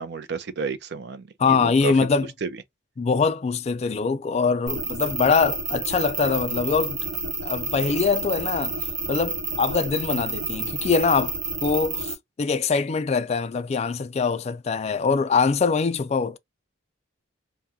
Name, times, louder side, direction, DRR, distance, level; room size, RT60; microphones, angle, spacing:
voice 1, 0.0-1.9 2.4-2.6, right 4 dB, 55° right, 0.5 m, -31 dB
voice 2, 1.4-2.3 3.0-7.0 7.4-8.8 9.1-11.4 11.6-16.4, left 5 dB, 35° left, 0.3 m, -23 dB
sound 1, 4.7-12.1, right 4 dB, 85° right, 1.0 m, -30 dB
2.8 x 2.2 x 3.5 m
head